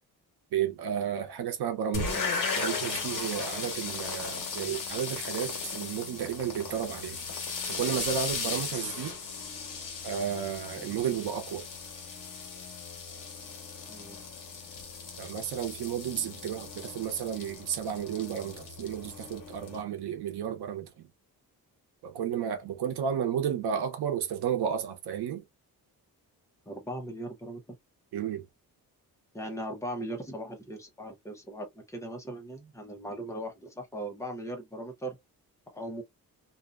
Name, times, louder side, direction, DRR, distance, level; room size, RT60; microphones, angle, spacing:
voice 1, 0.5-7.2 7.7-9.1 10.0-11.7 15.2-21.1 22.0-25.4 28.1-28.5, right 8 dB, 90° right, 0.8 m, -32 dB
sound 1, 1.9-19.8, left 5 dB, 55° left, 1.2 m, -37 dB
voice 2, 26.7-27.6 29.3-35.2 35.7-36.0, right 1 dB, 10° left, 0.7 m, -39 dB
2.7 x 2.2 x 2.4 m
wide cardioid pair, 165°, 38 cm